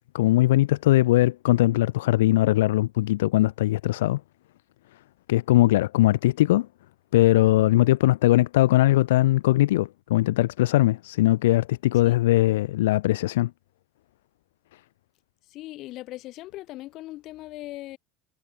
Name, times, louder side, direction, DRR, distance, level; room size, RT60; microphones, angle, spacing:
voice 1, 0.1-4.2 5.3-6.7 7.1-13.5, left 16 dB, 65° left, 0.5 m, -20 dB
voice 2, 15.5-18.0, left 17 dB, 45° left, 3.7 m, -39 dB
figure-of-eight pair, 70°, 0 cm